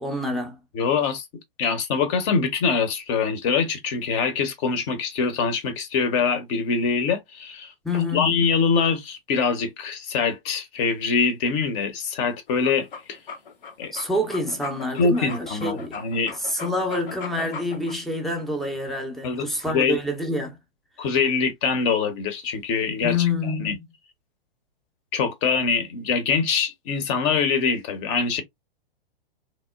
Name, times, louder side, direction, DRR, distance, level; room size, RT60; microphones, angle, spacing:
voice 1, 0.0-0.6 7.8-8.4 13.9-16.0 16.4-20.6 23.0-23.8, left 2 dB, ahead, 0.5 m, -27 dB
voice 2, 0.7-1.3 1.6-13.2 13.8-13.9 14.9-16.3 19.2-20.0 21.0-23.8 25.1-28.4, left 5 dB, 35° left, 0.7 m, -24 dB
sound 1, 12.5-17.9, left 5 dB, 60° left, 0.8 m, -38 dB
2.9 x 2.0 x 2.2 m
figure-of-eight pair, 110°, 30 cm